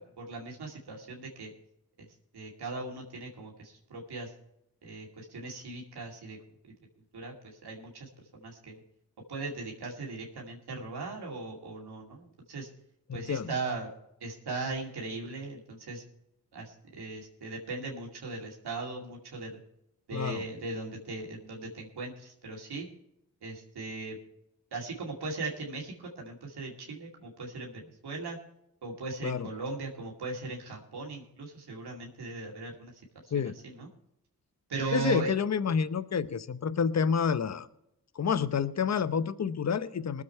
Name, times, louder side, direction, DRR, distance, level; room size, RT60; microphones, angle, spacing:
voice 1, 0.0-1.5 2.3-4.3 4.8-6.4 7.1-8.8 9.3-12.7 13.1-13.9 14.2-16.0 16.5-19.6 20.1-22.9 23.4-24.2 24.7-28.4 28.8-32.9 33.8-33.9 34.7-35.3, right 3 dB, 85° right, -1 dB, 2.4 m, -38 dB
voice 2, 13.1-13.5 20.1-20.5 29.2-29.5 33.3-33.6 34.9-37.7 38.1-40.2, left 6 dB, 45° left, 15 dB, 0.8 m, -29 dB
19.5 x 7.6 x 4.4 m, 0.82 s
cardioid pair, 40°, 38 cm